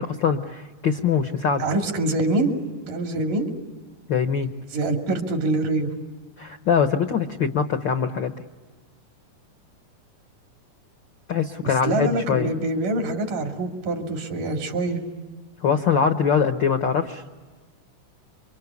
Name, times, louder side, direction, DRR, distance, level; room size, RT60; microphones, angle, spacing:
voice 1, 0.0-1.6 4.1-4.5 6.4-8.3 11.3-12.5 15.6-17.2, left 6 dB, 85° left, 7 dB, 1.0 m, -23 dB
voice 2, 1.6-2.5 2.9-3.5 4.7-5.9 11.6-15.0, right 2 dB, 85° right, 3 dB, 4.1 m, -25 dB
28.5 x 24.5 x 8.3 m, 1.4 s
omnidirectional pair, 3.6 m